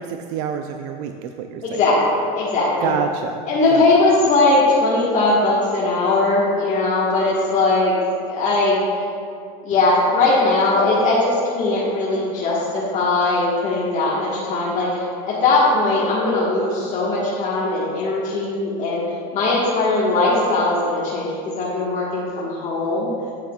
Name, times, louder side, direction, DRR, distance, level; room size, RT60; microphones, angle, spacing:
voice 1, 0.0-1.8 2.8-3.4 3.7-3.8, right 7 dB, 75° right, 5 dB, 0.4 m, -27 dB
voice 2, 1.6-2.9 3.5-7.9 8.2-8.8 9.6-19.0 19.3-23.1, left 2 dB, 40° left, -7 dB, 1.4 m, -19 dB
9.1 x 7.2 x 2.3 m, 2.4 s
supercardioid pair, 125°, 19 cm